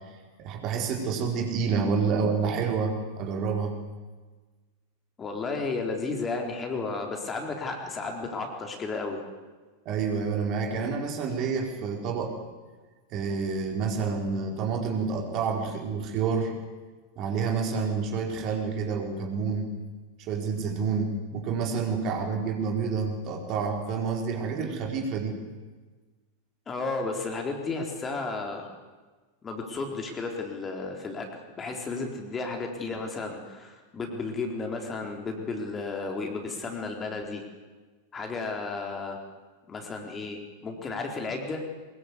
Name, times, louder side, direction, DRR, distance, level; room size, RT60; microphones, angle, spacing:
voice 1, 0.4-3.8 9.8-12.4 13.1-16.5 17.2-19.7 20.2-25.4, right 5 dB, 40° right, 2 dB, 4.6 m, -28 dB
voice 2, 5.2-9.2 26.7-28.7 29.4-31.3 31.6-37.4 38.1-39.2 39.7-41.6, left 3 dB, 20° left, 2 dB, 3.9 m, -33 dB
23.5 x 22.0 x 8.3 m, 1.3 s
figure-of-eight pair, 90°, 0 cm